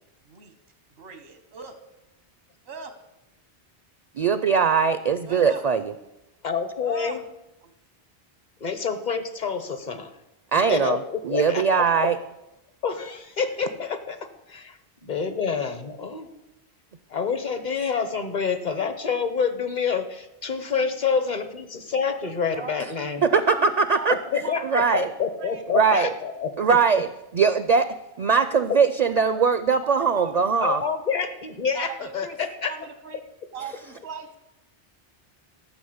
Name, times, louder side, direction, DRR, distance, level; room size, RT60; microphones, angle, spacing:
voice 1, 1.0-1.8 2.7-2.9 5.3-5.6 6.8-7.2 7.6-7.7 22.5-22.7 23.5-23.7 23.9-24.5 25.4-25.6 30.1-30.3 31.7-33.2 33.5-34.4, right 5 dB, 90° right, 7 dB, 1.3 m, -38 dB
voice 2, 4.2-5.9 10.5-12.2 23.2-24.2 24.6-25.1 25.7-26.1 26.6-27.1 27.3-30.8, right 5 dB, 50° right, 12 dB, 0.5 m, -21 dB
voice 3, 6.4-7.2 8.6-10.1 10.7-12.1 12.8-16.3 17.1-23.2 24.1-24.6 24.9-26.5 28.7-28.8 30.6-32.7, left 6 dB, 45° left, 10 dB, 1.1 m, -27 dB
13.0 x 6.2 x 7.9 m, 0.94 s
omnidirectional pair, 1.0 m